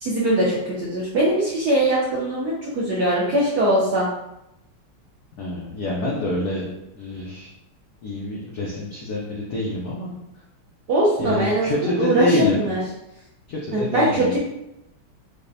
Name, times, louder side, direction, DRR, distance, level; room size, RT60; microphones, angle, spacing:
voice 1, 0.0-4.1 10.9-12.8 13.7-14.4, right 1 dB, 75° right, -5 dB, 0.9 m, -21 dB
voice 2, 5.4-6.6 7.0-7.5 8.0-10.1 11.2-12.7 13.5-14.4, left 1 dB, 90° left, -3 dB, 0.8 m, -26 dB
4.9 x 2.1 x 2.6 m, 0.86 s
omnidirectional pair, 2.4 m